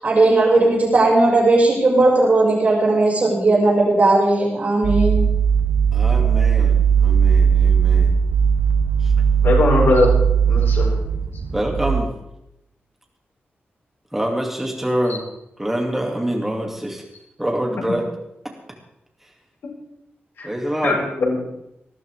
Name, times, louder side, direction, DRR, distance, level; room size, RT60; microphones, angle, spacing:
voice 1, 0.0-5.3, right 2 dB, 40° right, -4 dB, 6.5 m, -16 dB
sound 1, 4.8-12.0, right 7 dB, 55° right, 0.9 m, -17 dB
voice 2, 5.9-8.2 9.0-9.1 11.5-12.1 14.1-15.2 15.6-17.0 17.4-18.1 20.4-21.0, right 1 dB, 5° right, 0 dB, 2.7 m, -25 dB
voice 3, 9.4-10.1 10.5-10.9 20.4-20.5 20.8-21.4, left 3 dB, 90° left, -3 dB, 5.0 m, -19 dB
19.5 x 13.5 x 3.7 m, 0.84 s
wide cardioid pair, 150°, 4 cm